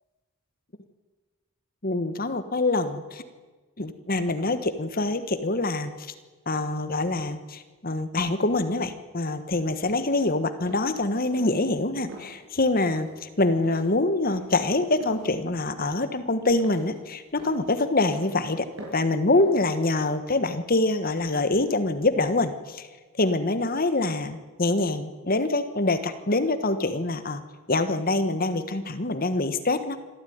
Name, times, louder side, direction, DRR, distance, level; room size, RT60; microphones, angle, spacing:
voice 1, 1.8-3.2 3.8-5.9 6.5-18.6 18.9-22.9 23.2-27.4 27.7-30.0, left 2 dB, 40° left, 10 dB, 1.4 m, -25 dB
sound 1, 10.7-10.9 11.4-11.7 12.1-12.3 12.8-13.1 13.5-13.9 14.3-14.6 15.0-15.3 15.8-16.1 16.6-16.9 17.4-17.6 18.1-18.4 18.8-19.1 19.4-19.7, right 1 dB, 65° right, 6.9 m, -43 dB
25.0 x 13.5 x 9.5 m, 1.3 s
head